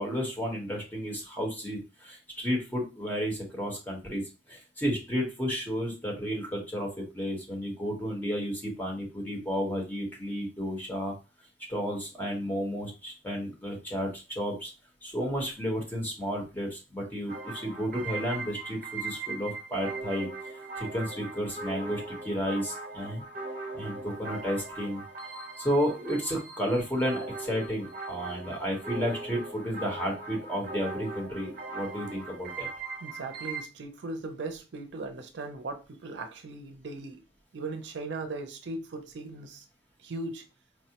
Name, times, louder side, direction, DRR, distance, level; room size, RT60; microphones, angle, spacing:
voice 1, 0.0-4.2 4.5-11.1 11.7-14.7 15.0-20.3 20.8-23.2 23.7-25.0 25.6-32.7, equal, 10° left, 1.1 m, -32 dB
sound 1, 17.3-33.6, right 3 dB, 50° right, 0.8 m, -39 dB
voice 2, 33.0-37.2 37.5-39.6 40.0-40.4, right 3 dB, 75° right, 0.5 m, -38 dB
4.6 x 2.1 x 2.8 m
head